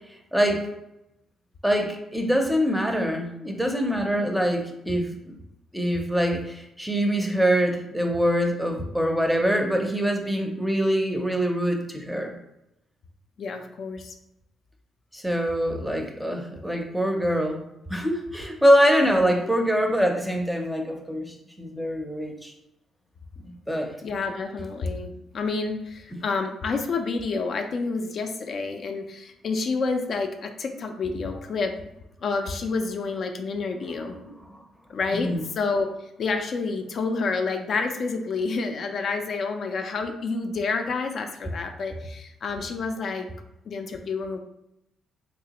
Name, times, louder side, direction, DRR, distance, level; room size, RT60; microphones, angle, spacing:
voice 1, 0.3-0.7 1.6-5.1 5.7-12.4 15.1-17.6 17.9-22.5 23.7-23.9 34.1-34.2 34.5-34.6 35.2-35.4, equal, ahead, 3 dB, 0.6 m, -24 dB
voice 2, 13.4-14.2 19.1-19.5 24.0-31.7 32.2-34.2 34.9-43.3 43.7-44.4, left 4 dB, 55° left, 5 dB, 0.4 m, -29 dB
3.2 x 3.0 x 2.9 m, 0.86 s
cardioid pair, 90°, 0 cm